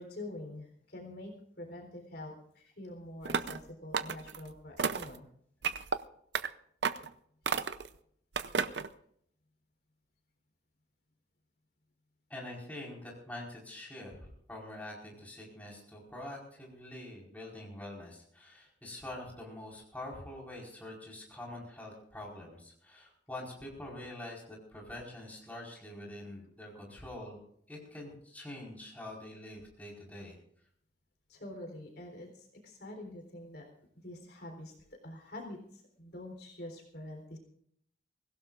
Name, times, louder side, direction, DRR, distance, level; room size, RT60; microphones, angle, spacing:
voice 1, 0.0-5.3 31.3-33.7 33.9-37.4, left 1 dB, 60° left, 2 dB, 3.8 m, -46 dB
sound 1, 3.3-3.6 3.9-4.4 4.8-5.2 5.6-6.0 6.3-6.5 6.8-7.1 7.5-7.9 8.4-8.9, right 5 dB, 70° right, 0.7 m, -32 dB
voice 2, 12.3-27.4 27.7-30.3, left 1 dB, 10° left, -3 dB, 4.7 m, -45 dB
24.0 x 16.5 x 2.5 m, 0.67 s
head